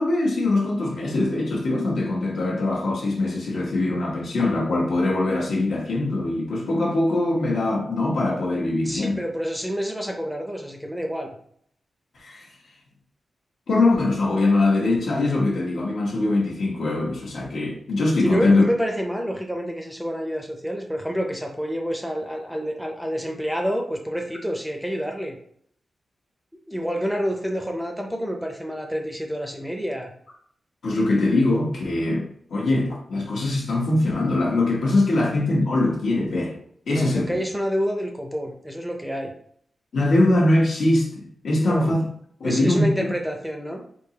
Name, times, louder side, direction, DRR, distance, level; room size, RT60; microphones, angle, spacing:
voice 1, 0.0-9.2 12.2-12.5 13.7-18.7 30.8-36.6 36.9-37.4 39.9-42.0 42.4-43.1, left 2 dB, 80° left, 1.0 m, -22 dB
voice 2, 8.8-11.4 18.2-25.4 26.7-30.1 36.9-39.3 41.6-41.9 42.4-43.8, equal, ahead, 0.5 m, -28 dB
3.7 x 2.8 x 2.8 m
wide cardioid pair, 125°, 0 cm